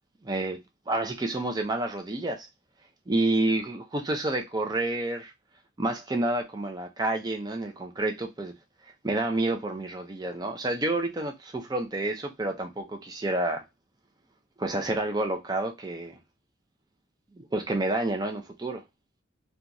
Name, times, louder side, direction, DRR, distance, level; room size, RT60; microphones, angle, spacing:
voice 1, 0.2-0.6 0.9-2.5 3.1-5.3 5.8-8.5 9.0-13.6 14.6-16.2 17.4-18.8, right 2 dB, 20° right, 0.4 m, -29 dB
2.9 x 2.3 x 2.5 m
head